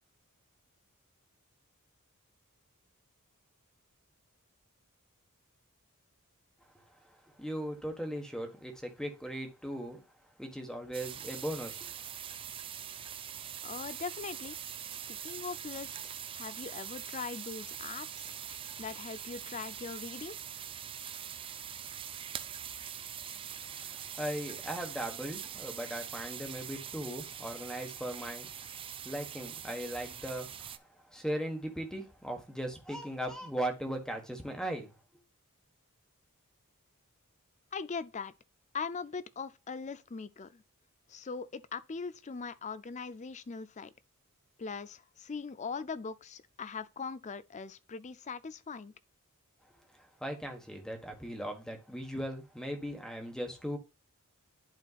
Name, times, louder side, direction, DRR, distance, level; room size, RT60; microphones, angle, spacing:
voice 1, 7.4-10.0 10.4-11.9 23.7-28.5 29.0-34.9 50.0-53.8, right 1 dB, 5° left, 1.4 m, -38 dB
sound 1, 10.9-30.8, right 9 dB, 25° right, 0.4 m, -43 dB
voice 2, 13.6-14.6 15.1-20.4 37.7-38.3 38.7-40.6 41.1-43.9 44.6-48.9, left 5 dB, 35° left, 0.5 m, -41 dB
11.0 x 4.4 x 2.4 m
head